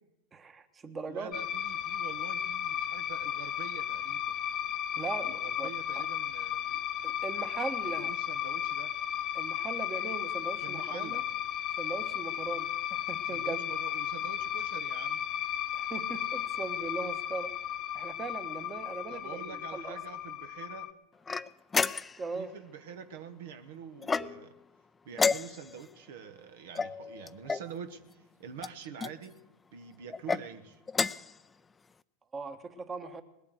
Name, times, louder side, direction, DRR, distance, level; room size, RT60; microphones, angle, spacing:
voice 1, 0.3-1.4 4.9-6.0 7.0-8.1 9.3-11.2 11.8-13.7 15.7-17.5 17.9-19.4 19.7-20.0 22.2-22.5 32.3-33.2, right 4 dB, 25° right, 10 dB, 1.4 m, -39 dB
voice 2, 1.1-4.3 5.2-6.8 7.8-8.9 10.6-11.2 13.2-15.3 19.1-20.9 22.3-24.5 25.0-29.4 29.7-30.8, right 7 dB, 70° right, 9 dB, 1.2 m, -46 dB
sound 1, 1.3-20.9, left 10 dB, 40° left, 0.8 m, -35 dB
sound 2, 21.3-22.3 24.0-24.6 25.1-25.9 26.7-27.7 28.6-29.1 30.1-30.4 30.9-31.4, left 4 dB, 15° left, 0.5 m, -31 dB
19.5 x 8.5 x 7.9 m, 0.92 s
hypercardioid pair, 95°, 0 cm